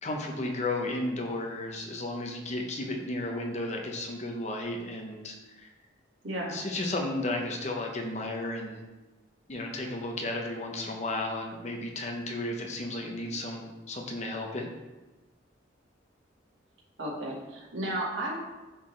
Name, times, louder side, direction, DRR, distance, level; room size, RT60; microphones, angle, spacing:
voice 1, 0.0-5.7 6.5-8.8 9.5-14.7, left 2 dB, 35° left, 1 dB, 0.8 m, -33 dB
voice 2, 6.2-6.6 17.0-18.4, right 1 dB, 80° right, -4 dB, 2.0 m, -33 dB
10.0 x 4.0 x 3.2 m, 1.1 s
head